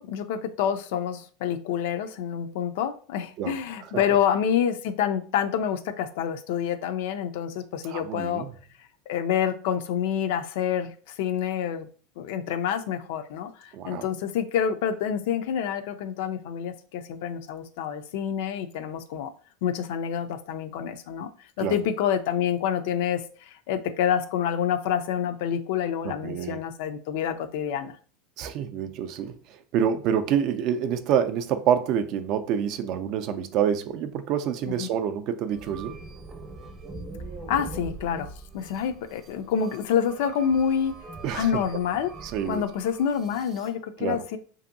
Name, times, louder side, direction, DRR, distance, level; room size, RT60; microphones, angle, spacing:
voice 1, 0.0-8.5 9.1-10.9 11.2-11.9 12.2-19.3 19.6-21.3 21.6-28.0 34.8-34.9 37.5-41.0 41.3-42.1 42.4-44.4, left 8 dB, 75° left, 0.3 m, -27 dB
voice 2, 7.8-8.5 13.7-14.1 21.6-21.8 26.0-26.6 28.4-36.0 41.2-41.5 42.2-42.6 44.0-44.2, right 8 dB, 55° right, 0.3 m, -27 dB
sound 1, 35.5-43.7, right 3 dB, 30° right, 0.7 m, -42 dB
2.6 x 2.5 x 2.6 m
supercardioid pair, 120°, 0 cm